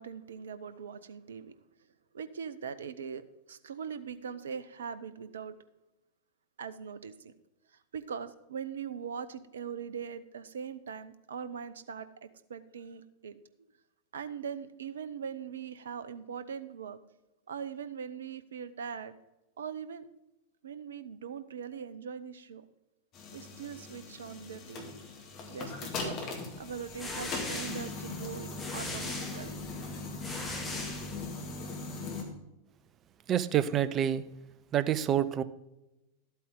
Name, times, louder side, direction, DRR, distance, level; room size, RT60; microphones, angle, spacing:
voice 1, 0.0-1.5 2.1-5.6 6.6-7.3 7.9-13.4 14.1-17.0 17.5-19.1 19.6-20.1 20.6-22.6 23.3-24.9 25.5-26.3 26.6-29.6, right 7 dB, 65° right, 13 dB, 0.7 m, -41 dB
sound 1, 23.1-32.2, left 3 dB, 35° left, 2.1 m, -40 dB
sound 2, 26.7-31.6, left 2 dB, 10° left, 2.2 m, -40 dB
voice 2, 33.3-34.2 34.7-35.4, right 10 dB, 30° right, 14 dB, 0.6 m, -27 dB
12.5 x 8.4 x 3.8 m, 0.95 s
figure-of-eight pair, 90°, 0 cm